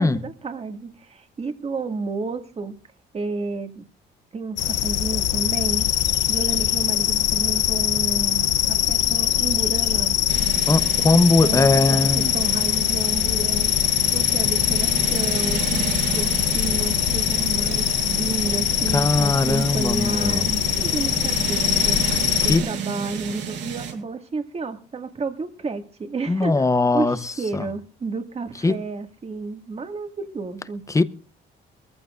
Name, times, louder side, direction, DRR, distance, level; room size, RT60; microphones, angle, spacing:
voice 1, 0.0-2.8 3.1-3.8 4.3-5.9 6.3-10.2 11.4-13.8 14.1-22.0 22.4-30.8, right 4 dB, 35° right, 2.0 m, -31 dB
sound 1, 4.6-22.6, left 13 dB, 85° left, 0.8 m, -22 dB
sound 2, 10.3-23.9, right 7 dB, 85° right, 6.6 m, -31 dB
voice 2, 10.7-12.3 18.9-20.5 22.4-22.7 26.3-27.6 28.6-28.8 30.9-31.0, left 3 dB, 15° left, 0.8 m, -20 dB
23.0 x 15.0 x 2.5 m
cardioid pair, 105°, 19 cm